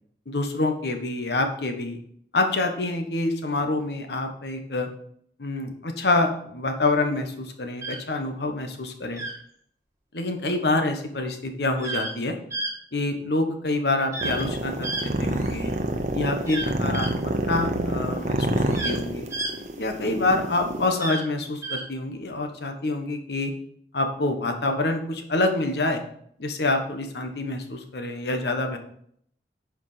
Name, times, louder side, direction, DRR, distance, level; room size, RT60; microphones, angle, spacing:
voice 1, 0.3-2.0 2.3-4.9 5.4-9.2 10.1-12.4 12.9-15.7 16.1-19.3 19.8-23.5 23.9-26.0 26.4-28.8, left 2 dB, 70° left, 5 dB, 1.3 m, -26 dB
sound 1, 7.8-8.0 9.1-9.4 11.8-12.1 12.5-12.7 14.1-14.4 14.8-15.7 16.5-17.1 18.4-19.0 19.3-19.5 21.0-21.2 21.6-21.8, right 2 dB, 15° right, 1.7 m, -31 dB
sound 2, 14.2-20.9, right 1 dB, 40° right, 0.8 m, -27 dB
9.5 x 5.2 x 5.0 m, 0.66 s
head